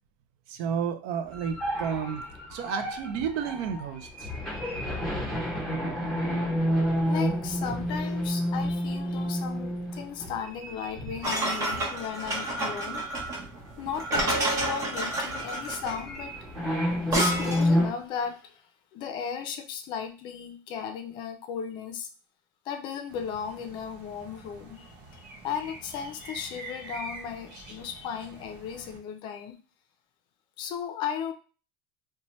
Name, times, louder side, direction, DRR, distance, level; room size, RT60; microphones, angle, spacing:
voice 1, 0.5-2.2 2.5-4.3, right 7 dB, 60° right, 9 dB, 0.4 m, -32 dB
sound 1, 1.3-12.0 12.4-12.6 13.1-13.5 13.8-17.9, equal, 5° left, 1.0 m, -30 dB
voice 2, 7.1-13.1 13.8-16.4 17.1-18.6 18.9-22.1 22.6-29.6 30.6-31.3, left 7 dB, 45° left, 7 dB, 0.5 m, -36 dB
sound 2, 11.2-17.8, right 1 dB, 30° right, 0.9 m, -30 dB
sound 3, 23.1-29.0, right 2 dB, 85° right, 0.9 m, -46 dB
2.7 x 2.2 x 3.0 m, 0.35 s
cardioid pair, 160°, 11 cm